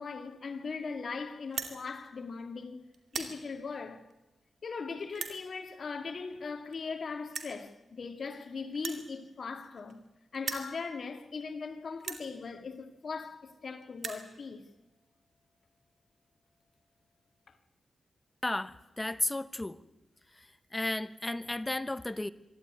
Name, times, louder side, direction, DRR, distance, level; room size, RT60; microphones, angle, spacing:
voice 1, 0.0-4.0 4.6-10.0 10.3-14.7 17.5-17.6, left 4 dB, 60° left, 2.1 m, -39 dB
sound 1, 1.4-1.8 2.4-2.6 2.9-3.4 4.1-4.2 5.1-5.4 6.4-6.5 6.7-6.8 7.3-7.6 8.7-10.1 10.3-10.7 11.4-11.5 12.0-12.3 13.2-13.3 13.5-13.6 13.8-14.3, right 5 dB, 70° right, 2.6 m, -39 dB
voice 2, 18.4-19.8 20.3-22.3, left 2 dB, 20° left, 1.0 m, -34 dB
24.5 x 13.0 x 9.5 m
cardioid pair, 80°, 0 cm